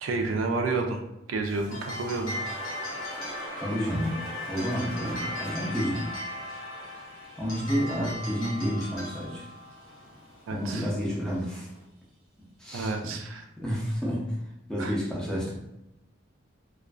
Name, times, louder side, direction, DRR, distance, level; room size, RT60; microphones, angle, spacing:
voice 1, 0.0-1.0 1.3-2.4 10.5-10.9 12.7-13.5 14.8-14.9, right 3 dB, 75° right, 4 dB, 0.3 m, -30 dB
sound 1, 1.4-11.8, equal, 70° left, 0.9 m, -40 dB
sound 2, 2.2-9.1, left 1 dB, 25° right, 0.8 m, -39 dB
voice 2, 3.6-6.1 7.4-9.5 10.5-11.7 12.6-13.1 13.6-14.4 14.7-15.6, equal, 5° left, -4 dB, 0.5 m, -30 dB
2.4 x 2.3 x 2.2 m, 0.87 s
head